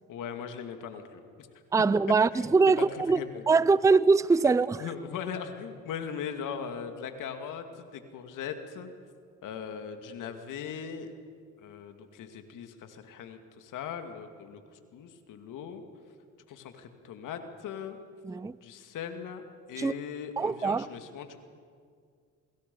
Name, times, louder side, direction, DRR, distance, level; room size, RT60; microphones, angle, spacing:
voice 1, 0.1-1.5 2.3-2.4 2.8-3.4 4.4-4.5 4.8-8.9 9.4-11.1 11.6-14.6 14.9-15.8 16.5-18.0 18.6-21.4, left 7 dB, 70° left, 2.4 m, -39 dB
voice 2, 1.7-3.2 3.5-4.8 18.2-18.6 19.8-19.9 20.4-20.9, right 4 dB, 10° right, 0.5 m, -23 dB
27.5 x 24.0 x 5.5 m
supercardioid pair, 70°, 32 cm